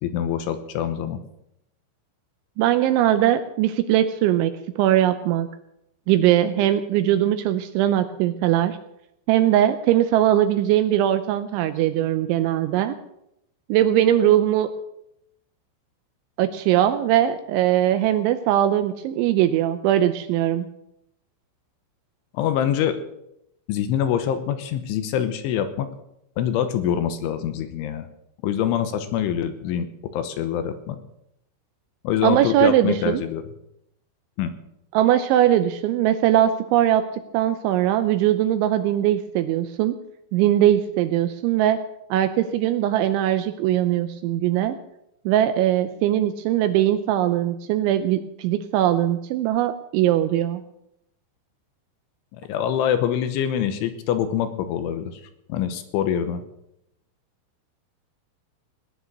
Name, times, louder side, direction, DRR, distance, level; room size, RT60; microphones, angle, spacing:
voice 1, 0.0-1.2 22.3-23.0 23.7-25.9 26.4-28.1 28.4-29.9 30.1-31.0 32.0-33.4 34.4-34.5 52.3-55.2 55.5-56.4, left 9 dB, 80° left, 10 dB, 3.2 m, -25 dB
voice 2, 2.6-5.5 6.1-8.8 9.3-13.0 13.7-14.7 16.4-20.7 32.2-33.2 34.9-37.0 37.3-40.0 40.3-41.8 42.1-44.8 45.3-50.6, right 12 dB, 80° right, 10 dB, 2.8 m, -20 dB
18.0 x 10.0 x 6.4 m, 0.80 s
omnidirectional pair, 5.9 m